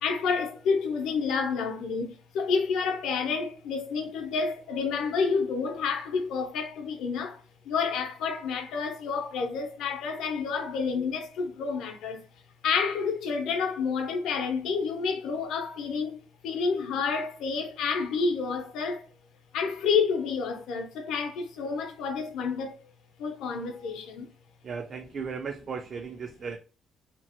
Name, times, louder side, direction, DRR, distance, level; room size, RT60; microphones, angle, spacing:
voice 1, 0.0-2.1 2.3-7.3 7.7-12.2 12.6-16.1 16.4-19.0 19.5-22.7 23.2-24.3, left 5 dB, 85° left, 0.6 m, -29 dB
voice 2, 24.6-26.6, right 5 dB, 50° right, 0.3 m, -36 dB
2.8 x 2.0 x 2.8 m
cardioid pair, 90°, 0 cm